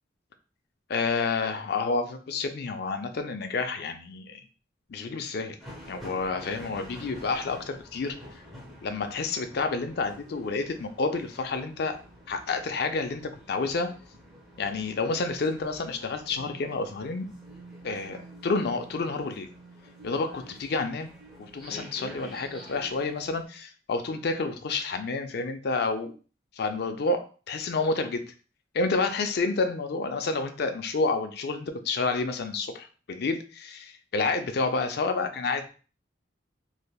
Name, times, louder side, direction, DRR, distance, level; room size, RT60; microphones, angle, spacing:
voice 1, 0.9-4.4 4.9-5.6 5.9-8.1 8.8-12.0 12.3-13.9 14.6-17.3 17.8-19.5 20.0-21.1 21.4-26.1 26.6-28.2 28.7-35.7, left 3 dB, 60° left, 7 dB, 0.4 m, -29 dB
sound 1, 5.6-23.5, equal, ahead, 0.9 m, -48 dB
3.2 x 2.6 x 2.3 m, 0.37 s
head